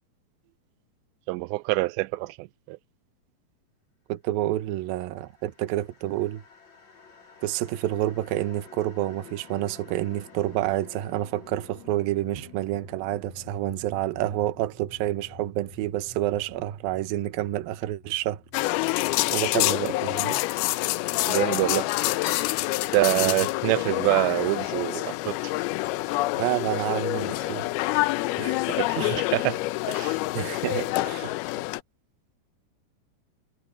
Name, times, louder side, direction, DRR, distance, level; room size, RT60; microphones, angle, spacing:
voice 1, 1.3-2.8 21.3-21.9 22.9-25.5 28.8-29.6 29.9-30.2, right 21 dB, 90° right, 2.8 m, -26 dB
voice 2, 4.1-6.4 7.4-18.4 19.3-20.4 23.2-23.4 26.4-27.6 28.4-29.2 30.3-31.3, right 14 dB, 70° right, 2.5 m, -29 dB
sound 1, 5.1-20.3, left 3 dB, 45° left, 5.0 m, -50 dB
sound 2, 18.5-31.8, left 19 dB, 80° left, 2.4 m, -27 dB
omnidirectional pair, 4.9 m